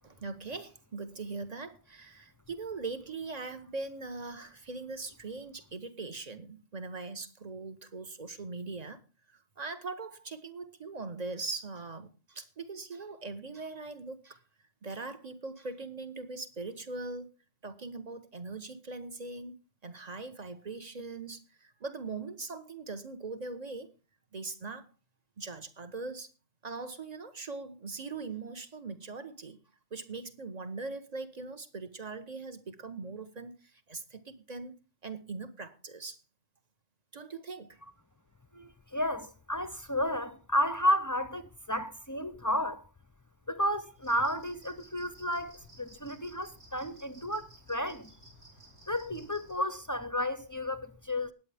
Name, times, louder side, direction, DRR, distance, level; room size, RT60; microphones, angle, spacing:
voice 1, 0.0-9.0 9.3-14.4 14.8-17.3 17.6-23.9 24.3-24.9 25.4-26.3 26.6-29.6 29.9-36.2 37.1-37.8, right 3 dB, 35° right, 1.3 m, -41 dB
voice 2, 38.5-42.8 43.5-48.1 48.9-51.3, equal, 20° left, 0.6 m, -32 dB
sound 1, 44.0-49.5, right 1 dB, 65° right, 6.5 m, -56 dB
20.0 x 8.9 x 3.5 m
omnidirectional pair, 1.2 m